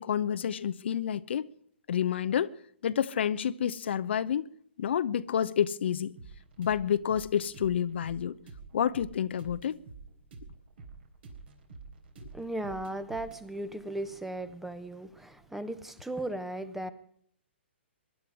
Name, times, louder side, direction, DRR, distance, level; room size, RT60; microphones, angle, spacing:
voice 1, 0.0-1.5 1.9-2.5 2.8-4.5 4.8-6.1 6.6-8.4 8.7-9.8, left 9 dB, 65° left, 0.7 m, -29 dB
sound 1, 6.2-15.8, right 4 dB, 60° right, 3.6 m, -50 dB
voice 2, 12.3-16.9, right 1 dB, 5° right, 1.0 m, -36 dB
23.5 x 11.0 x 4.9 m
hypercardioid pair, 130°, 7 cm